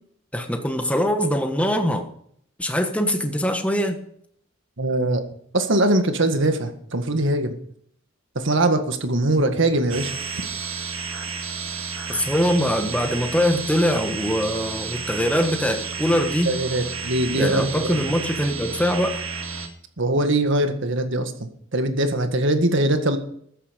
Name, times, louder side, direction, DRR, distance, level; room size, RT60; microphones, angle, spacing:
voice 1, 0.3-2.1 2.6-4.0 12.1-16.5 17.3-19.2, equal, 5° left, 5 dB, 1.4 m, -23 dB
voice 2, 4.8-5.2 5.5-7.6 8.4-10.1 16.5-18.0 20.0-23.2, right 1 dB, 65° right, 7 dB, 1.8 m, -22 dB
sound 1, 9.9-19.7, right 5 dB, 90° right, 2.1 m, -31 dB
14.0 x 10.0 x 5.3 m, 0.66 s
head